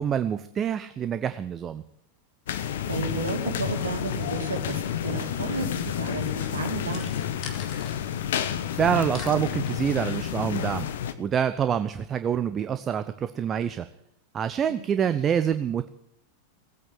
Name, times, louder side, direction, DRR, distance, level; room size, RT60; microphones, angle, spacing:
voice 1, 0.0-1.8 8.8-10.9 11.2-13.9 14.3-15.9, right 8 dB, 25° right, 11 dB, 0.7 m, -26 dB
sound 1, 2.5-11.1, left 9 dB, 60° left, 1.1 m, -30 dB
voice 2, 2.9-7.1 14.7-14.9, right 4 dB, 70° right, 3 dB, 2.6 m, -33 dB
sound 2, 5.7-8.0 8.3-9.7, left 6 dB, 35° left, 2.5 m, -45 dB
18.0 x 8.8 x 8.2 m, 0.72 s
figure-of-eight pair, 90°, 0 cm